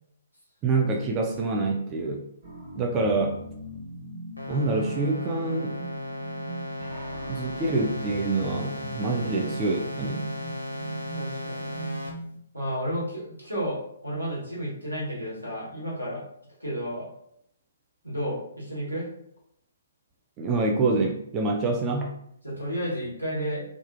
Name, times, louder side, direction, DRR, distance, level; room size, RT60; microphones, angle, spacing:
voice 1, 0.6-2.2 2.8-3.4 4.5-5.8 7.3-10.2 20.4-22.1, right 3 dB, 20° right, 1 dB, 0.3 m, -26 dB
sound 1, 2.4-12.4, right 2 dB, 55° right, 1.1 m, -40 dB
sound 2, 4.4-12.1, left 1 dB, 90° left, 0.7 m, -35 dB
voice 2, 11.1-11.9 12.5-16.2 16.6-17.1 18.0-19.1 22.4-23.6, equal, 90° right, -5 dB, 1.3 m, -32 dB
2.4 x 2.3 x 2.4 m, 0.71 s
figure-of-eight pair, 130°, 0 cm